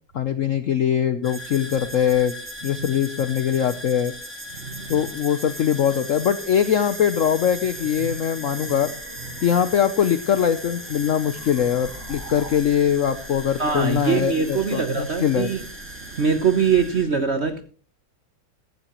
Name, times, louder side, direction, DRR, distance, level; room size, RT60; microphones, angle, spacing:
voice 1, 0.1-2.3 2.6-4.1 4.9-8.9 9.4-15.5, left 9 dB, 65° left, 0.7 m, -22 dB
sound 1, 1.2-17.1, equal, 5° right, 1.4 m, -38 dB
voice 2, 4.6-5.1 8.0-8.1 9.3-9.4 13.6-15.7 16.0-17.6, right 6 dB, 50° right, 0.8 m, -23 dB
sound 2, 6.6-12.5, right 1 dB, 85° right, 5.5 m, -45 dB
15.0 x 13.0 x 3.0 m
omnidirectional pair, 2.2 m